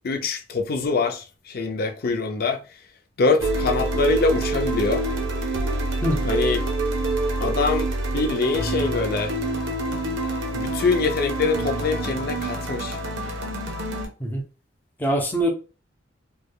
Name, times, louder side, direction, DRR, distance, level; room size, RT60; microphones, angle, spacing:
voice 1, 0.0-2.6 3.2-5.0 6.2-6.7 7.4-9.4 10.5-13.0, left 4 dB, 55° left, 0.5 m, -24 dB
sound 1, 3.4-14.1, right 2 dB, 90° right, 0.8 m, -26 dB
voice 2, 15.0-15.5, right 1 dB, 10° left, 0.6 m, -23 dB
3.3 x 2.2 x 2.2 m
head